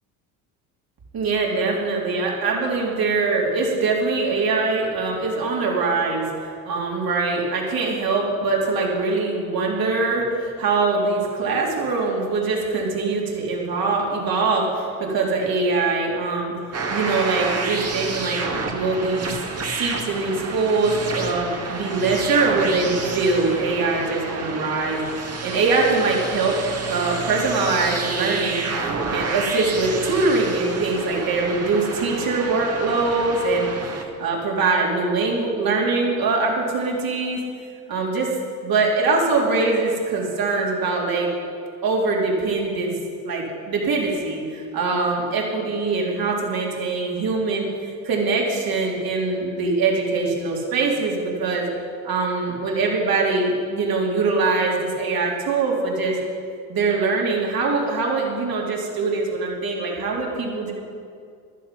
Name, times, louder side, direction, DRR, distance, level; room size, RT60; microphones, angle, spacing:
voice 1, 1.1-16.5 16.9-19.3 19.6-25.0 25.4-26.6 26.9-28.6 29.1-33.7 34.2-37.4 37.9-38.3 38.6-41.3 41.8-42.9 43.2-51.7 52.0-56.2 56.7-60.7, right 3 dB, 50° right, -2 dB, 3.6 m, -23 dB
sound 1, 16.7-34.0, right 3 dB, 35° right, 2.1 m, -30 dB
15.0 x 11.5 x 5.3 m, 2.3 s
hypercardioid pair, 70°, 45 cm